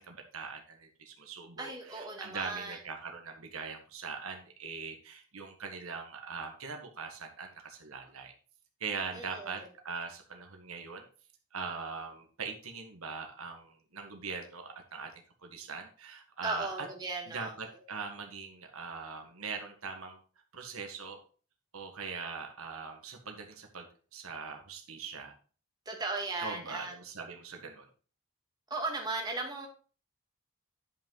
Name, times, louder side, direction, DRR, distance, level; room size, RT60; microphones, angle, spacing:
voice 1, 0.0-8.3 8.8-11.0 11.5-15.1 15.4-16.9 17.3-20.2 20.5-21.2 21.7-23.9 24.1-25.3 26.4-27.9, right 5 dB, 80° right, 4 dB, 1.5 m, -41 dB
voice 2, 1.6-2.8 9.1-9.6 16.4-17.5 25.8-26.9 28.7-29.7, right 3 dB, 20° right, 0 dB, 1.7 m, -36 dB
10.0 x 5.5 x 3.9 m, 0.39 s
head